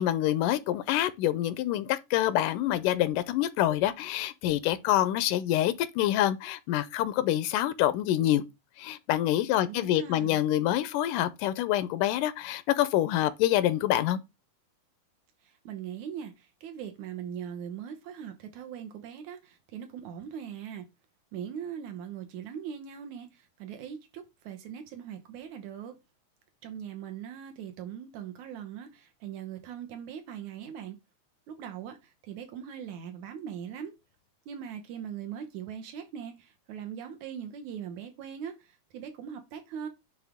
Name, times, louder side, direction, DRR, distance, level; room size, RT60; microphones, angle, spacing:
voice 1, 0.0-8.4 8.8-14.2, left 13 dB, 85° left, 2.2 m, -26 dB
voice 2, 9.6-10.4 15.4-20.9 21.3-25.9 26.6-31.0 31.5-33.9 34.5-39.9, right 8 dB, 70° right, 2.2 m, -40 dB
9.4 x 3.4 x 3.6 m
omnidirectional pair, 3.7 m